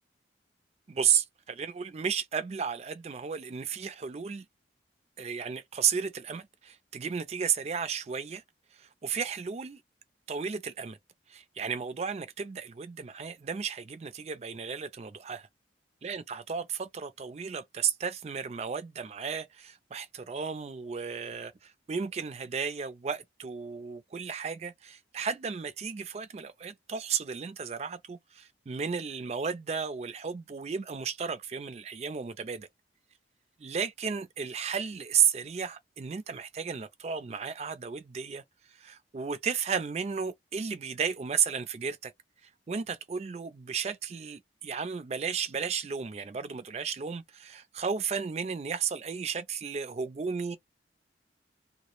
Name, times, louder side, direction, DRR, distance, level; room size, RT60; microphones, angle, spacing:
voice 1, 0.9-4.5 5.2-8.4 8.7-9.8 10.3-11.0 11.3-15.5 16.0-32.7 33.6-38.4 38.7-42.1 42.4-50.6, right 6 dB, 35° right, 0.3 m, -33 dB
2.2 x 2.0 x 3.0 m
head